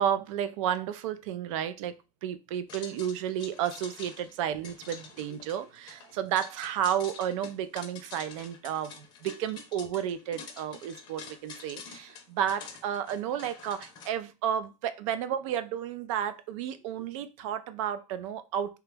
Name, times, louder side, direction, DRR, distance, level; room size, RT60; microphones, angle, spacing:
voice 1, 0.0-1.9 2.2-18.8, right 9 dB, 65° right, 12 dB, 0.4 m, -32 dB
sound 1, 2.7-14.1, left 5 dB, 25° left, 0.6 m, -47 dB
2.9 x 2.3 x 3.3 m, 0.28 s
supercardioid pair, 170°, 17 cm